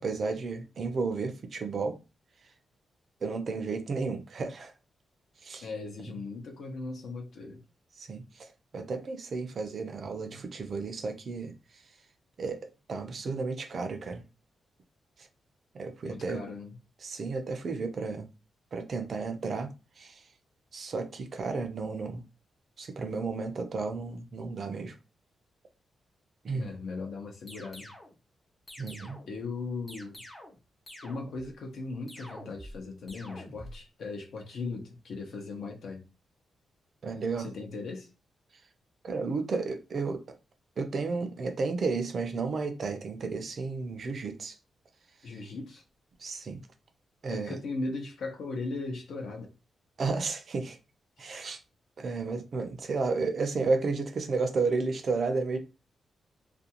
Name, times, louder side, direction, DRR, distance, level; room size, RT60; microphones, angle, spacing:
voice 1, 0.0-2.0 3.2-4.7 5.4-5.7 8.0-11.5 12.4-14.2 15.7-16.4 17.0-18.3 18.7-19.7 20.0-20.2 20.7-22.2 22.8-24.9 26.4-26.7 28.8-29.2 37.0-37.5 39.0-40.2 40.8-44.6 46.2-46.6 47.2-47.6 50.0-50.8 51.2-51.6 52.0-55.6, right 4 dB, 45° right, 0.4 m, -32 dB
voice 2, 5.6-7.6 10.2-10.4 16.0-16.8 26.5-27.9 29.3-30.2 31.0-36.1 37.4-38.1 45.2-45.8 47.3-49.5 51.2-51.4, left 3 dB, 65° left, 0.7 m, -38 dB
sound 1, 27.5-28.2 28.7-29.4 29.9-30.6 30.9-31.5 32.1-32.8 33.1-33.8, left 1 dB, 20° left, 0.5 m, -47 dB
2.5 x 2.2 x 2.8 m
wide cardioid pair, 155°, 0 cm